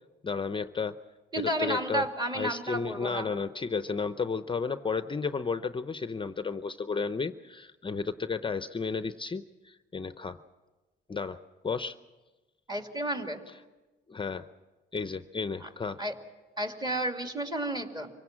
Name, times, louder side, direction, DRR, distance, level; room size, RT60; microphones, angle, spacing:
voice 1, 0.2-1.0 1.4-2.1 2.3-10.4 11.1-12.0 14.1-14.5 14.9-16.0, left 5 dB, 25° left, 11 dB, 0.7 m, -33 dB
voice 2, 1.3-3.3 12.7-13.4 15.6-15.7 16.0-16.1 16.6-18.1, right 1 dB, 20° right, 5 dB, 2.5 m, -32 dB
24.5 x 17.0 x 7.4 m, 1.2 s
cardioid pair, 90°, 20 cm